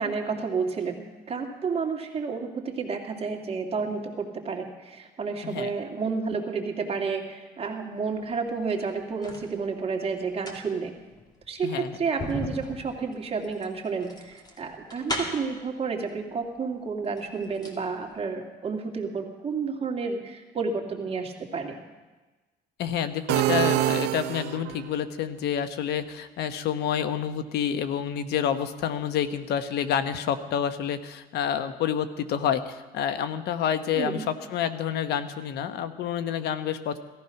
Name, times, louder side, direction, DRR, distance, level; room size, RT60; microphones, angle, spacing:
voice 1, 0.0-10.9 11.5-21.8 33.9-34.3, right 5 dB, 35° right, 2 dB, 2.3 m, -31 dB
sound 1, 8.5-9.5 10.2-15.6 16.6-16.7 17.0-17.8 18.1-18.2, left 1 dB, 25° left, 2.8 m, -37 dB
voice 2, 11.6-12.0 22.8-37.0, left 9 dB, 75° left, 10 dB, 1.2 m, -28 dB
sound 2, 23.3-24.9, right 15 dB, 85° right, 0.6 m, -25 dB
17.0 x 14.0 x 5.9 m, 1.2 s
cardioid pair, 110°, 17 cm